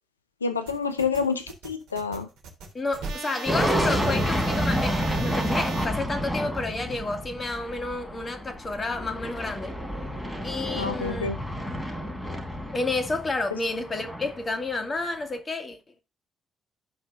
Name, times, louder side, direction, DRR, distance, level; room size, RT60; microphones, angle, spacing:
voice 1, 0.4-2.3 10.7-11.4 13.5-13.6, left 5 dB, 85° left, 0.5 m, -28 dB
sound 1, 0.7-5.8, right 5 dB, 65° right, 3.3 m, -38 dB
voice 2, 2.7-9.8 10.4-11.3 12.7-15.8, left 3 dB, 30° left, 2.2 m, -30 dB
sound 2, 3.5-14.7, equal, 10° left, 4.1 m, -29 dB
16.0 x 5.6 x 2.6 m
figure-of-eight pair, 40°, 0 cm